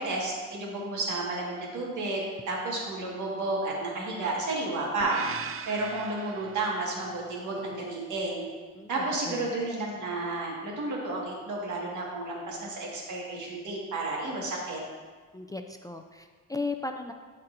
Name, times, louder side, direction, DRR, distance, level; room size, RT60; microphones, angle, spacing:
voice 1, 0.0-8.5 8.9-14.8, right 2 dB, 75° right, -2 dB, 1.8 m, -32 dB
sound 1, 5.0-7.2, right 8 dB, 45° right, 0.4 m, -39 dB
voice 2, 8.7-9.7 15.3-17.1, left 3 dB, 10° left, 5 dB, 0.3 m, -37 dB
12.5 x 4.3 x 2.6 m, 1.5 s
cardioid pair, 90°, 30 cm